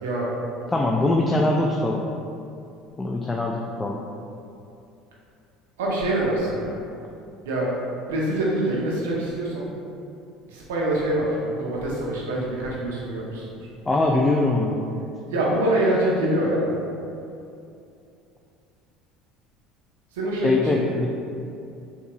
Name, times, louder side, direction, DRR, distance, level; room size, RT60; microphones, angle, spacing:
voice 1, 0.7-2.1 3.0-4.1 13.9-15.0 20.4-21.1, left 2 dB, 15° left, 0 dB, 0.3 m, -22 dB
voice 2, 5.8-6.8 7.4-7.7 8.1-9.7 10.5-13.5 15.3-16.7 20.1-21.0, right 1 dB, 85° right, -5 dB, 0.8 m, -25 dB
4.5 x 2.8 x 2.3 m, 2.6 s
hypercardioid pair, 80°, 0 cm